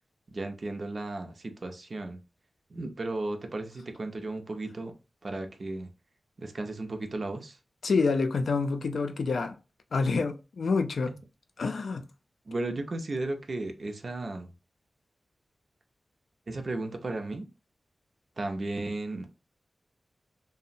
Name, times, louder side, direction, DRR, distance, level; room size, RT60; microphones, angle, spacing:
voice 1, 0.3-2.2 2.7-4.9 5.2-5.9 6.4-7.6 12.5-14.5 16.5-17.5 18.4-19.3, right 2 dB, 55° right, 0.5 m, -35 dB
voice 2, 7.8-9.6 9.9-11.1 11.6-12.0, left 4 dB, 90° left, 0.3 m, -27 dB
2.7 x 2.0 x 2.5 m
wide cardioid pair, 85°, 0 cm